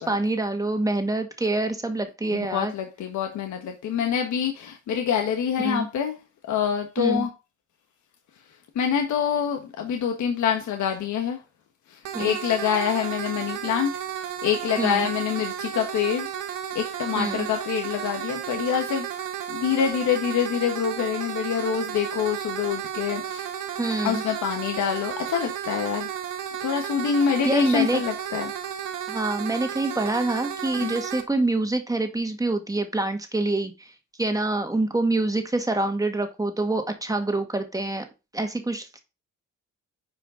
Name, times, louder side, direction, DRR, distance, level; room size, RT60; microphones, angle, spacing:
voice 1, 0.0-2.7 5.6-5.9 7.0-7.3 12.1-12.4 14.8-15.1 17.2-17.5 23.8-24.2 27.5-28.0 29.1-33.9 34.2-38.1 38.3-39.0, right 2 dB, 10° right, 5 dB, 1.7 m, -26 dB
voice 2, 2.3-6.1 6.4-7.3 8.7-11.4 11.9-13.9 14.4-16.3 16.7-19.1 19.5-23.5 24.0-26.1 26.6-28.5 30.8-31.0, left 8 dB, 70° left, 4 dB, 1.4 m, -26 dB
sound 1, 12.1-31.2, right 9 dB, 80° right, 1.4 m, -33 dB
9.5 x 5.0 x 3.7 m, 0.28 s
cardioid pair, 90°, 30 cm